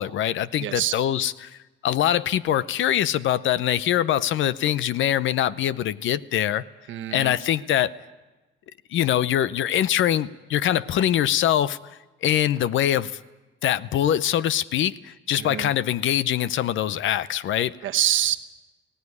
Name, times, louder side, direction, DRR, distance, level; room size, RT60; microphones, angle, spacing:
voice 1, 0.0-1.6 1.8-6.6 7.1-7.9 8.9-13.2 13.6-17.7, left 11 dB, 75° left, 17 dB, 0.7 m, -23 dB
voice 2, 0.6-0.9 6.9-7.3 15.4-15.7 17.8-18.4, right 12 dB, 75° right, 9 dB, 1.1 m, -25 dB
19.5 x 17.5 x 9.7 m, 1.2 s
cardioid pair, 90°, 20 cm